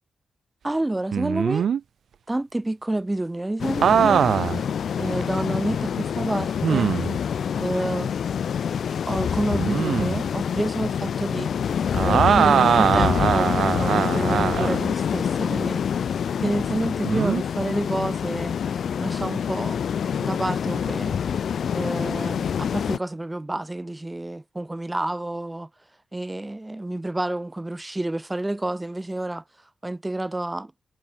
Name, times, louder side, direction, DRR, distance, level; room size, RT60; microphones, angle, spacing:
voice 1, 0.6-1.7 2.3-4.3 5.0-6.9 7.6-8.1 9.1-11.5 12.0-18.5 19.0-19.8 20.2-21.2 21.7-25.7 26.1-29.4 29.8-30.7, right 1 dB, 10° right, 0.7 m, -29 dB
sound 1, 1.1-1.8 3.8-4.6 5.2-5.3 6.6-7.2 9.5-10.2 11.9-14.8 17.0-17.4, right 8 dB, 75° right, 0.8 m, -21 dB
sound 2, 3.6-23.0, left 7 dB, 70° left, 1.9 m, -26 dB
wide cardioid pair, 165°, 0 cm